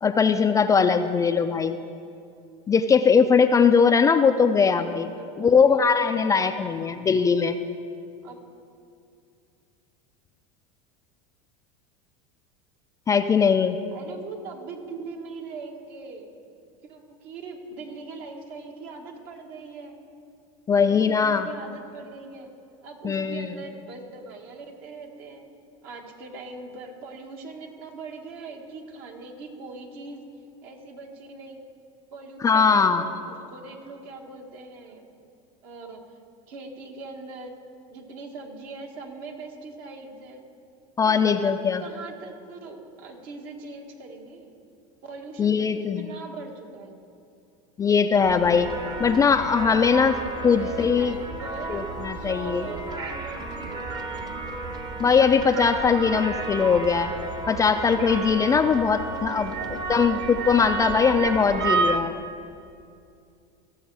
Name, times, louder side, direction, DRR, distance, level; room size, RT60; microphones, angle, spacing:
voice 1, 0.0-1.8 2.7-5.1 5.4-7.6 13.1-13.8 20.7-21.5 23.0-23.5 32.4-33.1 41.0-41.8 45.4-46.1 47.8-48.7 49.0-50.2 50.4-51.1 51.7-52.6 55.0-57.1 57.5-59.5 59.9-62.2, left 6 dB, 20° left, 8 dB, 0.3 m, -20 dB
voice 2, 4.8-5.9 8.2-8.4 13.9-16.3 16.8-19.9 20.7-22.5 22.8-25.4 25.8-30.3 30.6-31.6 32.1-35.1 35.6-36.0 36.5-37.5 37.9-40.4 41.1-44.5 45.0-45.7 46.0-47.0 50.4-51.8 52.1-54.3 59.3-60.1, right 3 dB, 60° right, 2 dB, 1.7 m, -41 dB
sound 1, 48.2-62.0, right 4 dB, 25° right, 0.9 m, -31 dB
15.0 x 6.3 x 4.7 m, 2.5 s
supercardioid pair, 120°, 18 cm